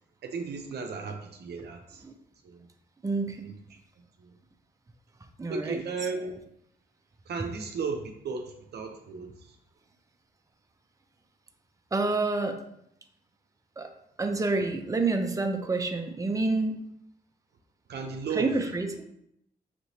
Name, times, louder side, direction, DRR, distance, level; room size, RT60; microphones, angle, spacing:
voice 1, 0.2-2.1 2.4-2.7 3.4-4.4 5.5-6.3 7.3-9.6 17.9-18.6, right 4 dB, 70° right, 4 dB, 0.6 m, -35 dB
voice 2, 3.0-3.5 5.4-5.8 11.9-12.6 13.8-13.9 14.2-16.8 18.4-19.0, right 3 dB, 20° right, 5 dB, 0.6 m, -28 dB
5.9 x 3.0 x 2.7 m, 0.75 s
cardioid pair, 60°, 18 cm